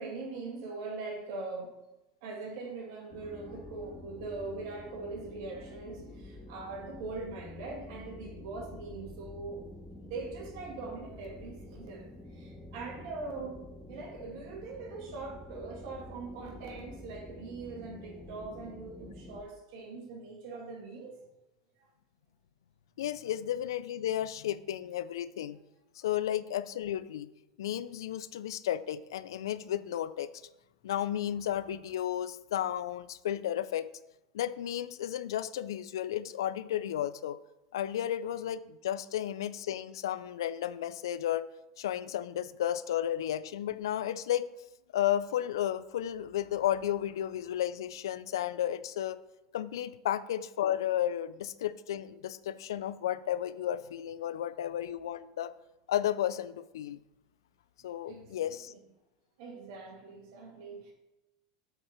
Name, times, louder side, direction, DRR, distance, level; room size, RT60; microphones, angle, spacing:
voice 1, 0.0-1.7 2.2-9.6 10.0-21.2 21.8-21.9 58.1-58.8 59.4-60.9, right 3 dB, 70° right, -1 dB, 2.1 m, -42 dB
sound 1, 3.1-19.4, left 1 dB, 5° left, 1.0 m, -48 dB
voice 2, 23.0-25.6 26.0-27.3 27.6-30.3 30.8-33.9 34.3-37.4 37.7-41.5 41.8-44.5 44.9-49.2 49.5-55.5 55.9-57.0 57.8-58.7, left 11 dB, 90° left, 16 dB, 0.3 m, -33 dB
7.9 x 4.4 x 4.4 m, 0.95 s
supercardioid pair, 115°, 2 cm